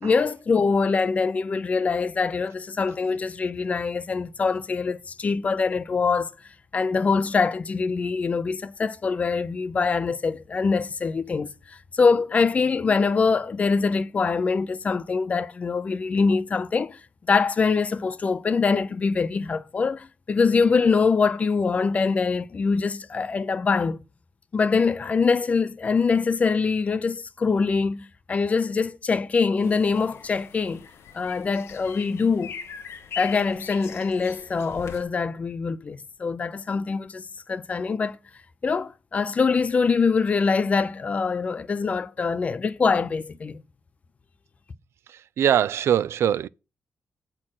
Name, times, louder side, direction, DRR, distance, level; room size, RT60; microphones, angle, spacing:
voice 1, 0.0-6.3 6.7-17.0 17.3-24.0 24.5-30.9 31.1-32.5 33.2-38.2 38.6-43.6, left 4 dB, 35° left, 0.4 m, -24 dB
sound 1, 29.6-35.0, left 7 dB, 85° left, 0.8 m, -41 dB
voice 2, 45.1-46.5, right 10 dB, 85° right, 0.4 m, -22 dB
8.6 x 4.4 x 6.0 m
wide cardioid pair, 165°, 4 cm